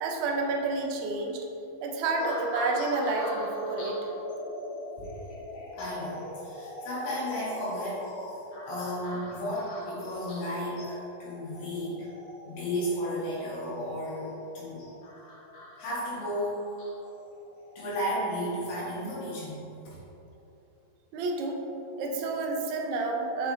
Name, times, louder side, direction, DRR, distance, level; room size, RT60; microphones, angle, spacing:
voice 1, 0.0-1.4 1.8-4.0 21.1-21.6 22.0-23.5, right 3 dB, 80° right, 1 dB, 1.6 m, -29 dB
sound 1, 2.2-18.6 19.3-19.6, left 1 dB, 70° left, 0.8 m, -42 dB
voice 2, 5.7-8.1 8.6-12.1 12.5-14.9 15.8-16.7 17.8-20.0, equal, 85° left, -8 dB, 2.9 m, -33 dB
6.1 x 4.6 x 4.1 m, 2.9 s
omnidirectional pair, 3.9 m